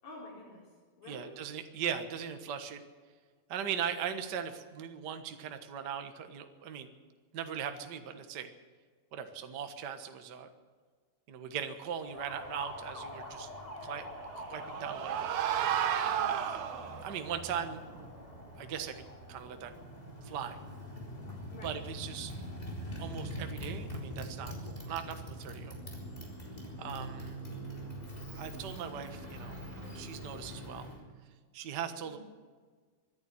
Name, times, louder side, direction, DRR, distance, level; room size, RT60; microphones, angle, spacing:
voice 1, 0.0-1.4 16.0-16.2 21.5-21.7 32.0-32.2, left 3 dB, 85° left, -6 dB, 5.7 m, -49 dB
voice 2, 1.1-2.8 3.5-6.9 7.3-8.5 9.1-10.5 11.3-13.5 13.8-14.1 14.3-15.3 16.2-16.7 17.0-17.8 18.6-19.7 20.2-20.6 21.6-22.3 23.0-25.8 26.8-27.4 28.4-30.9 31.5-32.2, right 8 dB, 45° right, 7 dB, 1.5 m, -39 dB
Motorcycle, 12.0-31.0, equal, 15° left, 3.9 m, -44 dB
sound 1, 14.2-17.2, right 9 dB, 80° right, 2.4 m, -32 dB
24.5 x 10.5 x 10.0 m, 1.5 s
omnidirectional pair, 3.3 m